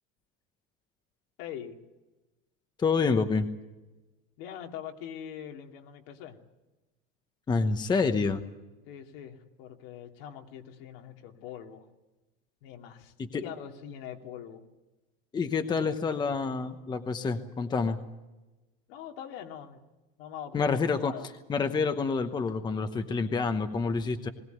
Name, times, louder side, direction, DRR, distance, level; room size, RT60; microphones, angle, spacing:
voice 1, 1.4-1.8 4.4-6.4 8.9-11.9 12.6-14.6 18.9-19.8 20.2-21.3, left 9 dB, 80° left, 3 dB, 2.8 m, -43 dB
voice 2, 2.8-3.5 7.5-8.4 13.2-13.4 15.3-18.0 20.5-21.1 21.5-24.3, left 4 dB, 15° left, 8 dB, 1.0 m, -28 dB
21.0 x 17.0 x 9.3 m, 1.1 s
cardioid pair, 160°, 29 cm